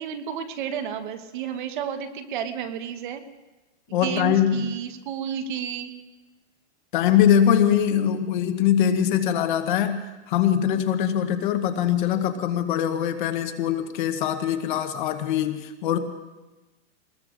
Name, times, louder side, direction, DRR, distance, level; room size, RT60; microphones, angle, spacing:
voice 1, 0.0-3.2 3.9-5.9, right 8 dB, 45° right, 7 dB, 1.3 m, -31 dB
voice 2, 3.9-4.7 6.9-16.0, left 9 dB, 45° left, 8 dB, 1.1 m, -22 dB
25.5 x 20.5 x 2.6 m, 1.1 s
supercardioid pair, 165°, 34 cm